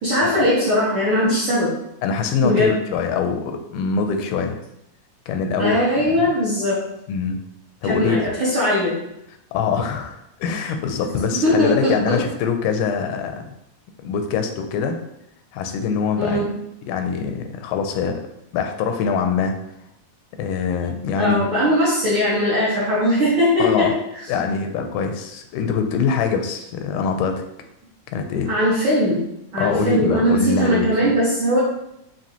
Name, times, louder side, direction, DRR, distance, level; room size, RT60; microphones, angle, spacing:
voice 1, 0.0-1.7 2.4-2.8 5.6-6.8 7.8-9.0 11.4-12.2 16.2-16.5 21.2-23.9 28.5-29.2 29.5-31.6, equal, 60° right, -9 dB, 1.3 m, -19 dB
voice 2, 2.0-4.6 5.3-6.2 7.1-7.4 7.8-8.2 9.5-13.5 14.0-15.0 15.5-16.6 16.9-18.2 18.5-19.6 20.4-21.5 23.6-23.9 24.3-27.4 28.1-28.5 29.6-31.1, left 6 dB, 90° left, 6 dB, 2.1 m, -23 dB
5.5 x 2.6 x 2.8 m, 0.82 s
omnidirectional pair, 3.6 m